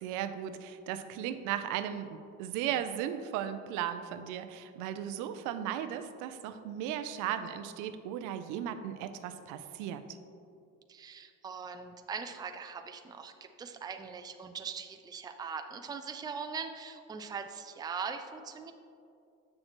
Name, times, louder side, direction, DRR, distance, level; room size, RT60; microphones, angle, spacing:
voice 1, 0.0-10.1, right 10 dB, 80° right, 10 dB, 0.5 m, -36 dB
voice 2, 10.9-18.7, right 5 dB, 15° right, 7 dB, 0.4 m, -41 dB
7.5 x 6.5 x 3.0 m, 2.5 s
supercardioid pair, 95°, 31 cm